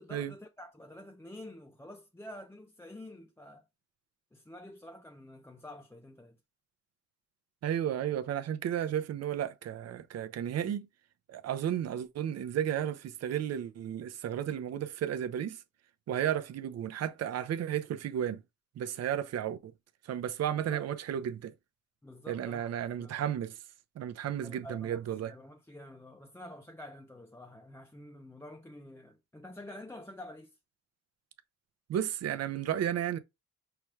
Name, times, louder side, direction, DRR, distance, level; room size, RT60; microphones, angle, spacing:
voice 1, 0.0-3.7 4.3-6.4 20.6-20.9 22.0-22.7 23.0-23.3 24.4-30.6, left 1 dB, 10° left, 0.5 m, -48 dB
voice 2, 7.6-10.9 11.3-15.6 16.1-18.4 18.8-19.7 20.1-21.5 22.3-23.5 24.0-25.3 31.9-33.2, right 10 dB, 55° right, 0.7 m, -33 dB
5.8 x 2.3 x 3.1 m
cardioid pair, 90°, 30 cm